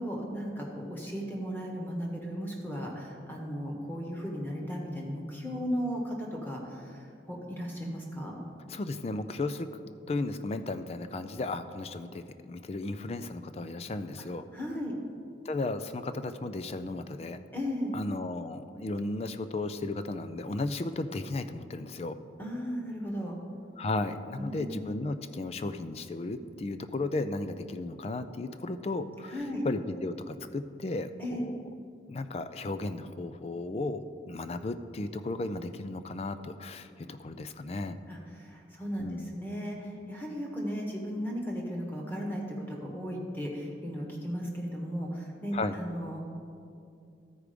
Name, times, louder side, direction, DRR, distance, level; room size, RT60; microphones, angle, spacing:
voice 1, 0.0-8.3 14.2-14.3 14.5-14.9 17.5-17.9 22.4-23.4 24.4-24.7 29.3-29.6 31.2-31.4 38.1-46.3, equal, 10° left, -1 dB, 1.2 m, -36 dB
voice 2, 8.7-9.7 10.1-14.5 15.4-17.4 17.9-22.2 23.8-29.4 29.6-31.6 32.1-38.0 39.0-39.3 45.5-45.8, left 2 dB, 35° left, 10 dB, 0.3 m, -35 dB
13.0 x 4.8 x 5.1 m, 2.5 s
head